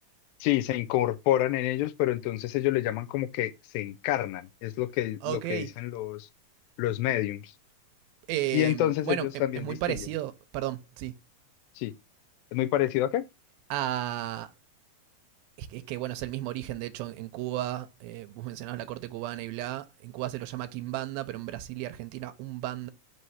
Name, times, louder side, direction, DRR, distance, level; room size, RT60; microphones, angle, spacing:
voice 1, 0.4-6.3 6.8-7.5 8.5-10.1 11.8-11.9 12.5-13.2, left 14 dB, 85° left, 2.3 m, -28 dB
voice 2, 5.2-5.7 8.3-9.3 9.6-11.1 13.7-14.5 15.6-22.9, right 14 dB, 90° right, 2.4 m, -34 dB
5.4 x 3.2 x 5.6 m
omnidirectional pair, 4.2 m